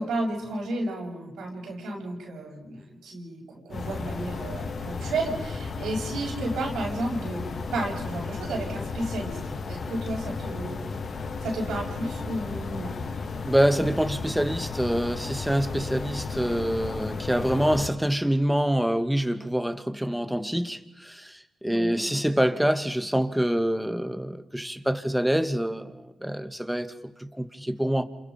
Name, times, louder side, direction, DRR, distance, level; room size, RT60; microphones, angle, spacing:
voice 1, 0.0-9.4 9.7-10.8 11.4-13.0 21.7-22.0, right 2 dB, 80° right, 6.3 m, -32 dB
sound 1, 3.7-17.9, left 4 dB, 60° left, 2.0 m, -34 dB
voice 2, 13.5-21.3 21.6-26.9 27.2-28.0, equal, 5° right, 2.3 m, -26 dB
29.5 x 27.5 x 5.3 m
supercardioid pair, 45°, 0 cm